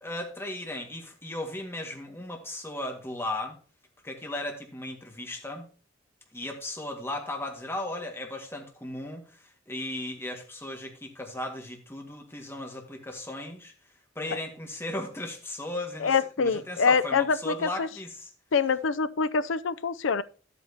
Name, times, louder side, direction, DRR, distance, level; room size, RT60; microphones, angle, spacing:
voice 1, 0.0-3.6 4.0-5.7 6.3-13.7 14.2-18.3, left 1 dB, 15° left, 1.8 m, -36 dB
voice 2, 16.0-17.9 18.5-20.2, left 5 dB, 85° left, 0.5 m, -25 dB
12.0 x 8.4 x 2.8 m
head